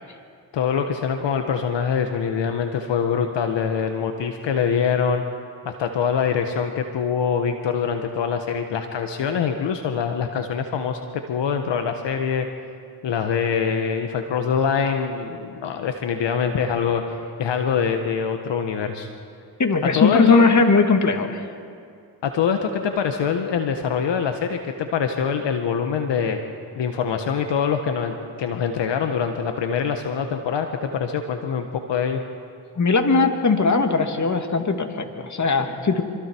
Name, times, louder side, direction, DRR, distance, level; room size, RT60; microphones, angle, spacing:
voice 1, 0.5-5.2 5.6-12.5 13.0-19.1 19.9-20.4 22.2-26.4 26.7-32.2, left 7 dB, 75° left, 5 dB, 1.6 m, -24 dB
voice 2, 19.6-21.4 32.8-36.0, left 4 dB, 40° left, 5 dB, 2.4 m, -19 dB
27.5 x 25.0 x 4.7 m, 2.3 s
supercardioid pair, 60°, 44 cm